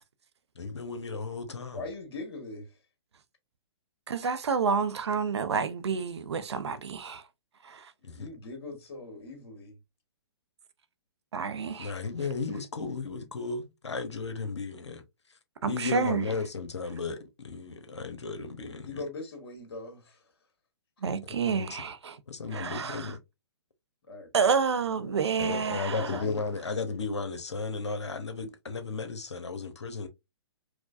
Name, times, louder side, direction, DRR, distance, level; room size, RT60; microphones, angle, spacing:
voice 1, 0.6-1.8 8.0-8.3 11.8-15.0 15.7-19.0 21.5-21.8 22.3-23.2 25.4-30.1, left 4 dB, 85° left, 0.9 m, -34 dB
voice 2, 1.7-2.7 8.1-9.8 18.8-20.2 24.1-25.1 26.0-26.4, left 3 dB, 60° left, 1.7 m, -41 dB
voice 3, 4.1-7.2 7.6-7.9 11.3-11.9 15.6-16.2 21.0-22.2 22.5-23.1 24.3-26.1, right 6 dB, 75° right, 0.6 m, -29 dB
4.8 x 2.2 x 2.5 m
hypercardioid pair, 130°, 14 cm